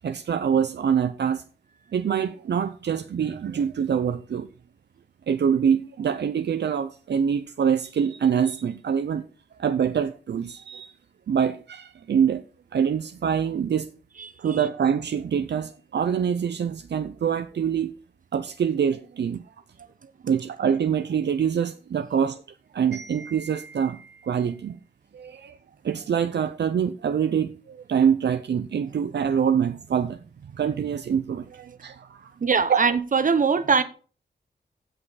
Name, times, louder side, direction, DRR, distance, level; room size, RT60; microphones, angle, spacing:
voice 1, 0.0-1.4 1.9-4.5 5.3-9.2 9.6-10.9 11.3-12.4 12.7-13.9 14.4-17.9 18.3-19.4 20.2-22.4 22.7-24.8 25.1-25.6 25.8-30.2 30.5-32.3 32.7-32.8, right 7 dB, 70° right, 0.6 m, -25 dB
voice 2, 32.4-33.8, right 5 dB, 50° right, 1.0 m, -21 dB
15.5 x 5.6 x 4.1 m
wide cardioid pair, 105°, 18 cm